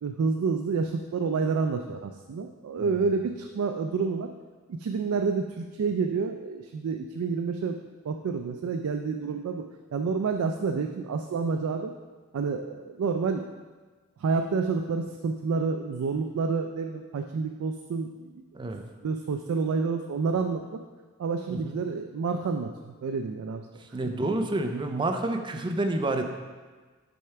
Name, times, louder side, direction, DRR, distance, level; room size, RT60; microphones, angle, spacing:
voice 1, 0.0-4.3 4.7-7.8 8.0-9.6 9.9-11.9 12.3-13.5 14.2-18.4 19.0-20.8 21.2-23.7, right 4 dB, 80° right, 5 dB, 0.3 m, -29 dB
voice 2, 23.9-26.3, right 2 dB, 20° right, 5 dB, 0.4 m, -29 dB
6.3 x 3.3 x 5.7 m, 1.4 s
head